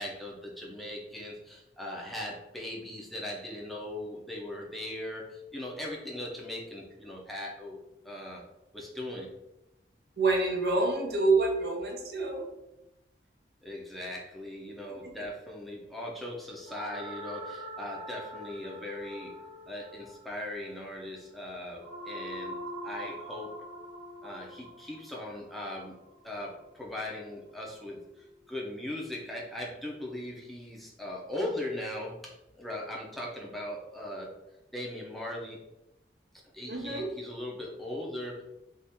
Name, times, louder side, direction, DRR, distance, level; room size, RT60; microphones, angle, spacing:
voice 1, 0.0-8.4 8.7-9.3 13.6-19.4 19.7-22.6 22.8-23.6 24.2-26.0 26.2-34.3 34.7-35.6 36.5-38.4, left 1 dB, ahead, -3 dB, 0.5 m, -39 dB
voice 2, 10.2-12.5 14.9-15.3 36.7-37.1, right 3 dB, 60° right, 2 dB, 0.6 m, -27 dB
sound 1, 16.7-26.9, equal, 40° right, 1.2 m, -44 dB
2.7 x 2.5 x 3.5 m, 0.94 s
head